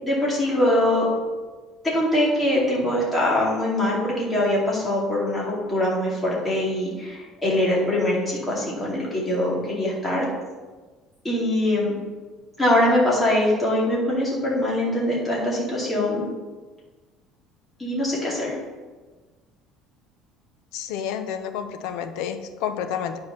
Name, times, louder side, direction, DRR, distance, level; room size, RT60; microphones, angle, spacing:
voice 1, 0.0-1.1 1.9-10.3 11.2-12.0 12.6-16.2 17.8-18.6, left 1 dB, 10° left, -5 dB, 2.4 m, -23 dB
voice 2, 20.7-23.2, left 8 dB, 75° left, 8 dB, 0.8 m, -30 dB
9.6 x 4.8 x 5.8 m, 1.3 s
cardioid pair, 170°, 0 cm